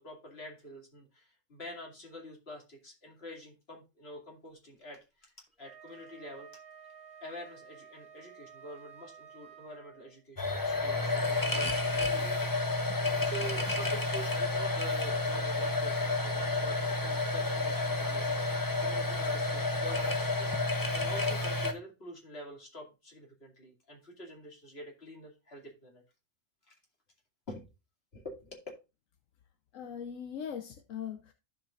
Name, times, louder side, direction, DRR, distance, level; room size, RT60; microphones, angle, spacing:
voice 1, 0.0-6.5 7.2-12.5 13.2-26.0 26.7-26.8 27.5-27.7 28.1-28.6, equal, 50° left, 2.6 m, -47 dB
Wind instrument woodwind instrument, 5.5-10.2, right 7 dB, 25° right, 1.9 m, -53 dB
sound 1, 10.4-21.7, left 2 dB, 20° left, 0.8 m, -30 dB
voice 2, 29.7-31.3, left 8 dB, 80° left, 1.1 m, -40 dB
15.0 x 5.1 x 2.4 m
omnidirectional pair, 1.3 m